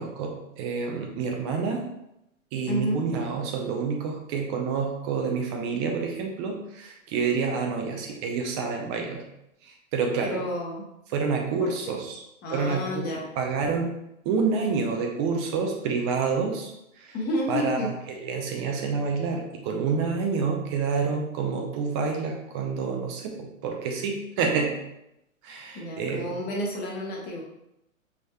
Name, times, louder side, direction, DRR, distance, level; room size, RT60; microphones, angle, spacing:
voice 1, 0.0-1.8 2.5-9.2 9.6-10.4 11.1-12.2 12.5-13.1 13.4-13.9 14.2-16.7 17.0-17.1 17.5-17.9 18.2-24.7 25.4-26.3, right 5 dB, 20° right, 2 dB, 0.5 m, -28 dB
voice 2, 2.7-3.0 10.2-10.8 11.6-11.9 12.4-13.2 17.1-17.9 25.7-27.4, left 1 dB, 25° left, -2 dB, 1.0 m, -30 dB
6.1 x 3.5 x 2.3 m, 0.84 s
figure-of-eight pair, 110°, 41 cm